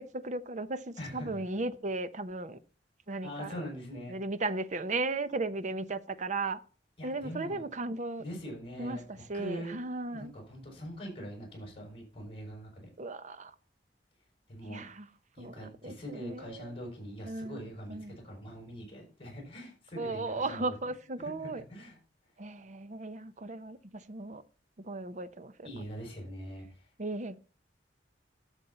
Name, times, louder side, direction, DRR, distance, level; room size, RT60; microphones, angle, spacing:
voice 1, 0.0-2.6 3.1-3.6 4.1-6.6 7.0-8.2 8.8-10.3 13.0-13.5 14.7-15.1 15.4-16.7 17.2-18.2 20.0-21.6 22.4-24.4 24.8-25.7 27.0-27.4, right 2 dB, 45° right, 0.8 m, -36 dB
voice 2, 1.0-1.4 3.2-4.2 7.0-7.6 8.2-9.8 10.1-12.7 14.5-14.8 15.3-18.0 18.2-20.9 21.2-22.0 25.6-26.9, equal, 30° left, 6.1 m, -43 dB
12.0 x 7.3 x 4.2 m
head